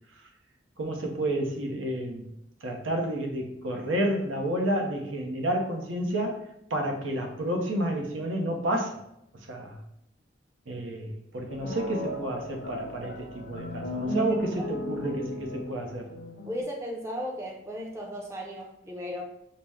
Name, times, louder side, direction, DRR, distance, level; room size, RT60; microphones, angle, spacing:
voice 1, 0.8-2.3 2.6-6.4 6.7-9.0 9.5-9.8 10.7-16.1, right 1 dB, 90° right, 2 dB, 0.8 m, -30 dB
sound 1, 11.5-16.6, left 1 dB, 60° left, 0.6 m, -35 dB
voice 2, 16.4-19.2, equal, 15° right, -1 dB, 0.5 m, -35 dB
5.8 x 2.1 x 3.5 m, 0.79 s
head